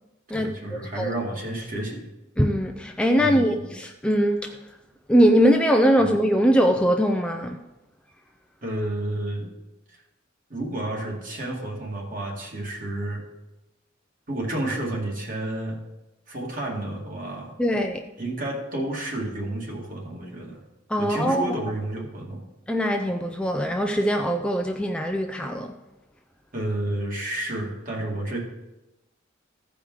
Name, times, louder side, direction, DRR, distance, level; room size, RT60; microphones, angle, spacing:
voice 1, 0.3-2.0 3.2-3.6 6.0-6.1 8.6-9.5 9.9-10.0 10.5-13.2 14.3-15.8 16.3-17.5 18.2-20.6 21.0-22.4 26.5-28.4, right 1 dB, 45° right, 2.2 m, -31 dB
voice 2, 2.4-4.5 5.1-7.6 17.6-18.0 20.9-21.5 22.7-25.7, equal, 5° left, 0.4 m, -21 dB
15.0 x 5.0 x 4.7 m
head